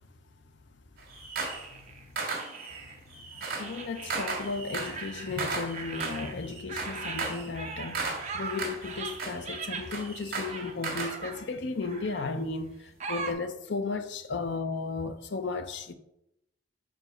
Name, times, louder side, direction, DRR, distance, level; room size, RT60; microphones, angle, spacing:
sound 1, 1.0-1.7 2.2-11.2, right 4 dB, 50° right, 1.7 m, -36 dB
sound 2, 1.5-3.0 3.6-5.5 5.7-9.9 10.4-11.4 11.8-12.3 13.0-13.3, right 4 dB, 35° right, 0.7 m, -40 dB
voice 1, 3.6-12.8 13.1-15.9, left 4 dB, 60° left, 0.6 m, -34 dB
4.8 x 4.0 x 5.8 m
head